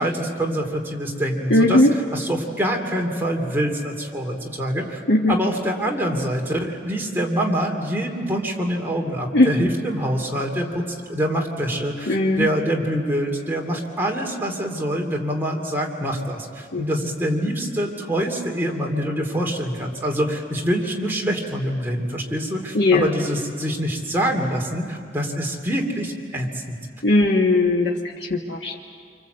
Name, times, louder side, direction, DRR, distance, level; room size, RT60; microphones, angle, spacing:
voice 1, 0.0-5.0 5.3-10.8 11.1-26.8, equal, 10° right, 0 dB, 2.7 m, -25 dB
voice 2, 1.5-1.9 5.1-5.3 9.3-9.5 12.1-12.5 16.7-16.8 22.7-23.1 27.0-27.9 28.3-28.8, left 2 dB, 80° left, -1 dB, 1.5 m, -18 dB
28.0 x 25.0 x 8.0 m, 2.2 s
head